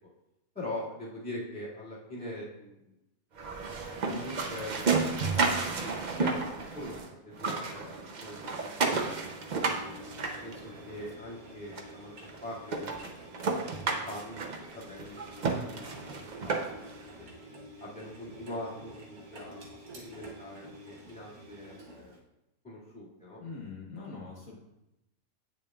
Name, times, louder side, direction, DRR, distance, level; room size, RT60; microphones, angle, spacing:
voice 1, 0.5-2.9 3.9-7.0 7.2-9.3 9.7-10.0 10.4-12.1 12.4-13.1 13.6-16.6 17.2-17.3 17.8-22.2 22.6-23.4, left 1 dB, 5° left, -8 dB, 2.0 m, -43 dB
sound 1, 3.4-7.1 7.3-11.1 11.8-11.9 12.3-12.4 12.7-16.9, right 4 dB, 50° right, 0.6 m, -32 dB
Engine, 8.8-22.2, equal, 80° right, 1.7 m, -49 dB
voice 2, 23.4-24.5, left 4 dB, 65° left, -4 dB, 1.6 m, -42 dB
8.6 x 6.7 x 2.3 m, 0.90 s
omnidirectional pair, 1.5 m